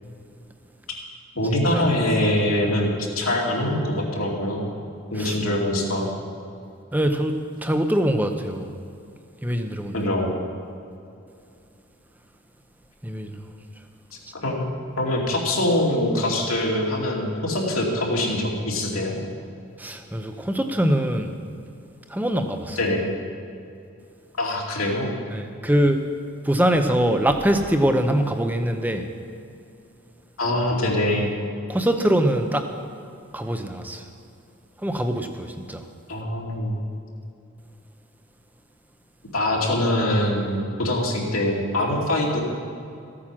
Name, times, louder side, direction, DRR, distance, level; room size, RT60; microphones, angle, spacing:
voice 1, 1.4-4.7 5.1-6.1 9.9-10.3 14.4-14.7 15.0-19.2 22.8-23.0 24.4-25.2 30.4-31.3 36.1-36.8 39.3-42.4, left 1 dB, 80° left, -2 dB, 2.4 m, -23 dB
voice 2, 6.9-8.7 9.4-10.0 13.0-13.3 19.8-21.3 22.1-22.8 25.3-26.0 26.4-29.0 31.7-32.7 33.3-34.0 34.8-35.8, right 1 dB, 10° right, 6 dB, 0.6 m, -23 dB
15.0 x 8.7 x 6.1 m, 2.5 s
head